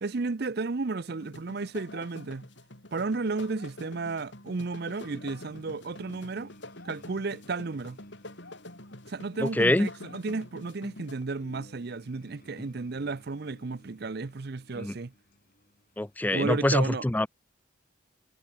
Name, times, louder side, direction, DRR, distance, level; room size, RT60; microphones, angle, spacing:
voice 1, 0.0-2.5 2.9-6.5 6.8-8.0 9.1-15.1 16.3-17.1, right 3 dB, 50° right, 0.6 m, -33 dB
sound 1, 1.1-11.2, left 1 dB, 65° left, 6.2 m, -46 dB
sound 2, 4.9-16.2, left 1 dB, 45° left, 6.6 m, -57 dB
voice 2, 9.4-9.9 14.8-14.9 16.0-17.3, left 1 dB, 10° left, 0.3 m, -25 dB
head